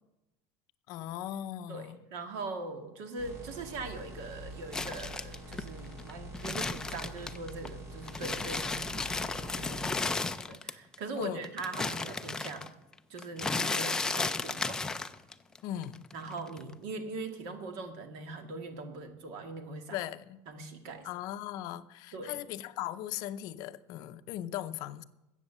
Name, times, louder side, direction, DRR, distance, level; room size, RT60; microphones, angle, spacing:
voice 1, 0.9-2.0 11.2-11.5 15.6-16.1 19.9-20.4 21.0-25.0, left 12 dB, 50° left, 11 dB, 0.6 m, -38 dB
voice 2, 1.7-12.7 13.1-14.8 16.1-20.0 20.5-21.1 22.1-22.4, right 3 dB, 60° right, 5 dB, 1.9 m, -41 dB
sound 1, 3.2-10.0, right 1 dB, 35° right, 3.7 m, -46 dB
sound 2, 4.7-7.7 8.0-10.9 11.2-15.6 15.8-16.7, left 3 dB, 10° left, 0.4 m, -34 dB
14.5 x 8.0 x 6.7 m, 0.97 s
cardioid pair, 170°, 9 cm